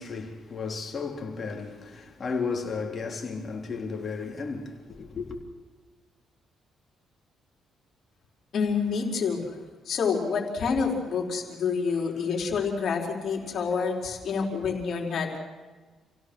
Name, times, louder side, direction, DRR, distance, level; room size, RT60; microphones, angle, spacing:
voice 1, 0.0-5.4, left 4 dB, 40° left, 3.8 m, -34 dB
voice 2, 8.5-9.5 9.9-15.4, left 5 dB, 65° left, 4.7 m, -28 dB
28.5 x 16.5 x 6.4 m
cardioid pair, 90°, 0 cm